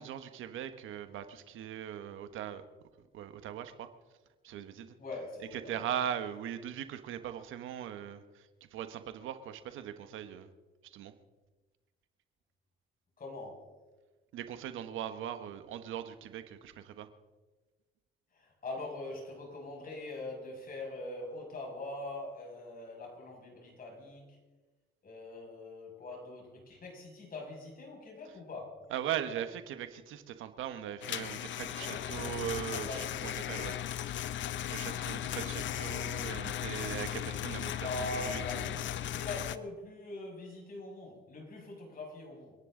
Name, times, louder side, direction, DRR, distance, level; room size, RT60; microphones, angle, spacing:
voice 1, 0.0-2.6 3.1-3.9 4.4-4.9 5.5-10.5 10.8-11.1 14.3-17.1 28.9-33.8 34.4-38.8, right 10 dB, 85° right, 10 dB, 1.3 m, -40 dB
voice 2, 5.0-5.9 13.2-13.7 18.3-24.4 25.0-28.9 31.7-32.4 32.6-33.5 35.0-35.9 37.8-42.5, left 2 dB, 45° left, -1 dB, 6.3 m, -43 dB
sound 1, 31.0-39.6, left 11 dB, 70° left, 0.7 m, -37 dB
29.5 x 10.5 x 3.8 m, 1.2 s
cardioid pair, 90°, 20 cm